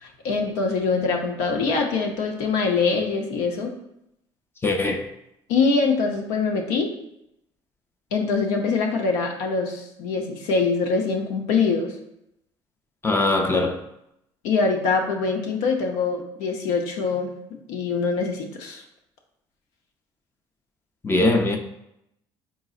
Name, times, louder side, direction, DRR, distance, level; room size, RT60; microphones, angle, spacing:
voice 1, 0.0-3.7 5.5-6.9 8.1-11.9 14.4-17.3 17.7-18.8, left 4 dB, 90° left, 0.7 m, -24 dB
voice 2, 4.6-5.1 13.0-13.8 21.0-21.6, left 2 dB, 20° left, 0.4 m, -21 dB
4.0 x 3.8 x 2.4 m
cardioid pair, 100°, 11 cm